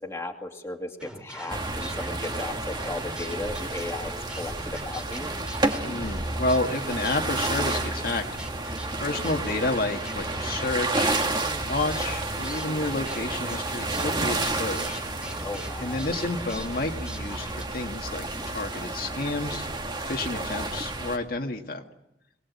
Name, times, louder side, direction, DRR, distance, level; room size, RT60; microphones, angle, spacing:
voice 1, 0.0-5.3 15.4-16.0, left 2 dB, 15° left, 3 dB, 2.3 m, -36 dB
sound 1, 1.0-17.7, equal, 5° right, 2.6 m, -42 dB
sound 2, 1.5-21.2, right 2 dB, 25° right, 2.0 m, -31 dB
voice 2, 5.8-8.2 9.0-15.0 15.8-19.7 20.1-21.8, left 2 dB, 55° left, 3 dB, 1.7 m, -30 dB
22.5 x 19.5 x 8.3 m, 0.86 s
head